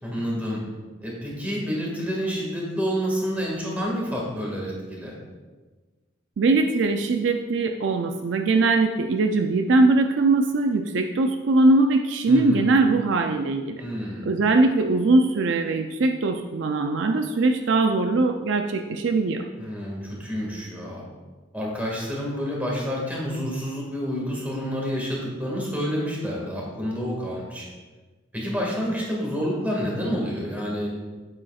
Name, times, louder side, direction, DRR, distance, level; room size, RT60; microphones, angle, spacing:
voice 1, 0.0-0.6 1.0-5.1 12.3-12.7 13.8-14.3 19.6-21.1 21.5-27.6 28.3-30.9, equal, 10° right, -3 dB, 1.8 m, -28 dB
voice 2, 6.4-13.8 14.3-19.5, right 3 dB, 60° right, 5 dB, 0.4 m, -21 dB
8.8 x 8.3 x 2.4 m, 1.3 s
head